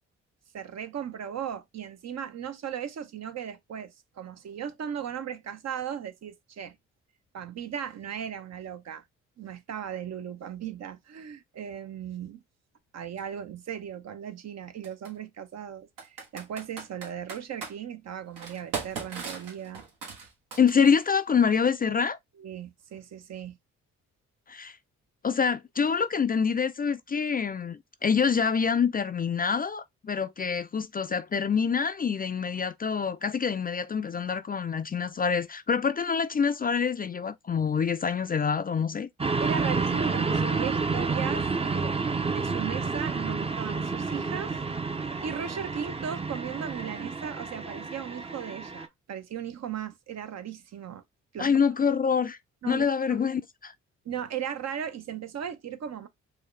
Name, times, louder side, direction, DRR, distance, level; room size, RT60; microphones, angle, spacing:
voice 1, 0.5-6.8 7.3-9.0 9.4-12.4 12.9-19.8 22.4-23.6 39.4-42.0 42.3-44.6 45.2-51.0 51.3-51.5 52.6-53.2 54.0-56.1, right 8 dB, 55° right, 0.7 m, -37 dB
Computer keyboard, 13.2-13.3 14.8-15.1 16.0-17.7 18.4-21.0, right 5 dB, 80° right, 1.4 m, -38 dB
voice 2, 20.6-22.2 24.5-24.8 25.2-39.1 51.4-52.4 52.7-53.7, left 6 dB, 30° left, 0.4 m, -26 dB
sound 1, 39.2-48.9, right 4 dB, 20° right, 0.6 m, -30 dB
4.7 x 2.1 x 3.1 m
supercardioid pair, 55°, 32 cm